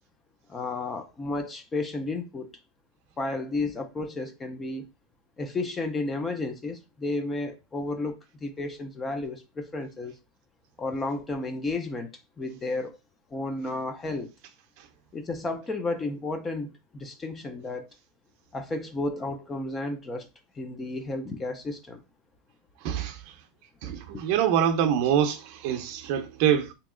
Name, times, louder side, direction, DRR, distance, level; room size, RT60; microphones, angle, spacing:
voice 1, 0.5-2.5 3.2-4.9 5.4-10.1 10.8-12.1 12.4-13.0 13.3-14.3 15.1-17.9 18.5-20.3 20.6-22.0 24.1-24.2, left 2 dB, 15° left, 0.4 m, -32 dB
voice 2, 22.8-23.2 23.8-26.7, right 9 dB, 50° right, 0.6 m, -25 dB
3.0 x 2.8 x 3.6 m
supercardioid pair, 165°, 0 cm